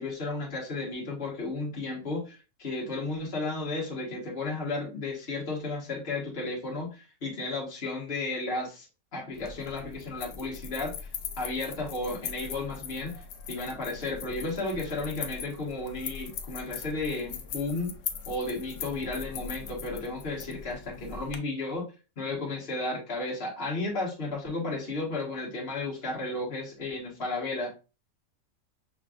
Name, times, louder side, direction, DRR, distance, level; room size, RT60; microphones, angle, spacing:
voice 1, 0.0-8.9 9.1-11.1 11.4-17.9 18.2-21.9 22.2-27.7, left 2 dB, 50° left, -4 dB, 1.6 m, -33 dB
sound 1, 9.3-21.4, left 6 dB, 75° left, 1.0 m, -40 dB
5.8 x 3.1 x 2.5 m, 0.32 s
omnidirectional pair, 1.3 m